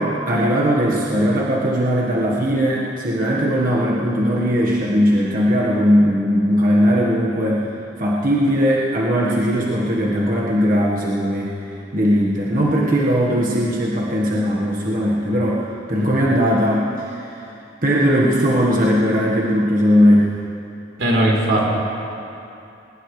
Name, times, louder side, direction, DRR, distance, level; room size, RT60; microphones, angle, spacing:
voice 1, 0.0-7.6 8.0-11.5 11.9-17.4 17.8-20.3, equal, 45° right, -4 dB, 1.5 m, -18 dB
voice 2, 21.0-21.6, right 1 dB, 85° right, -3 dB, 3.8 m, -18 dB
20.5 x 20.5 x 3.3 m, 2.8 s
head